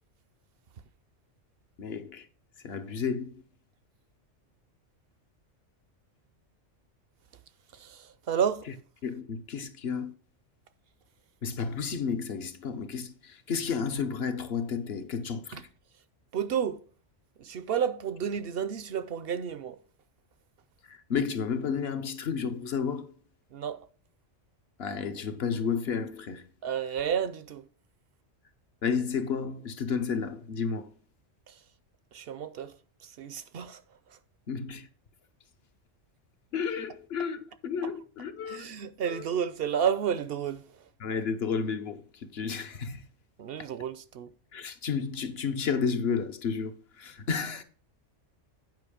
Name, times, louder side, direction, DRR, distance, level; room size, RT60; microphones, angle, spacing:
voice 1, 1.8-2.3 2.6-3.3 9.0-10.1 11.4-15.7 20.8-23.1 24.8-26.5 28.8-30.9 34.5-34.9 36.5-38.7 39.1-39.3 41.0-43.0 43.6-43.7 44.5-47.6, left 6 dB, 60° left, 1.1 m, -32 dB
voice 2, 7.7-8.7 15.5-15.6 16.3-16.8 17.4-19.8 23.5-23.8 26.6-27.6 31.5-31.6 32.1-32.7 33.0-33.8 38.5-40.6 43.4-44.3, right 8 dB, 60° right, 0.7 m, -31 dB
9.4 x 5.4 x 5.0 m
omnidirectional pair, 1.3 m